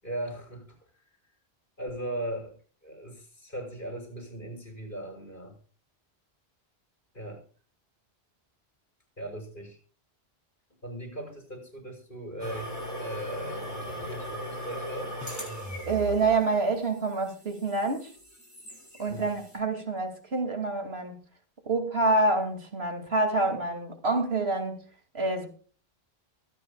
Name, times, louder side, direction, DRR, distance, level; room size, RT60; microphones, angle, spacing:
voice 1, 0.0-1.0 1.8-2.5 2.8-5.6 7.1-7.4 9.2-9.8 10.8-15.1 19.1-19.3, right 1 dB, 50° left, 3 dB, 6.4 m, -38 dB
sound 1, 12.4-19.6, right 1 dB, 15° left, 8.0 m, -39 dB
voice 2, 15.8-18.1 19.0-21.2 21.7-24.8 25.1-25.5, right 3 dB, 70° right, 4 dB, 2.8 m, -27 dB
23.5 x 9.1 x 2.4 m, 0.40 s
omnidirectional pair, 1.1 m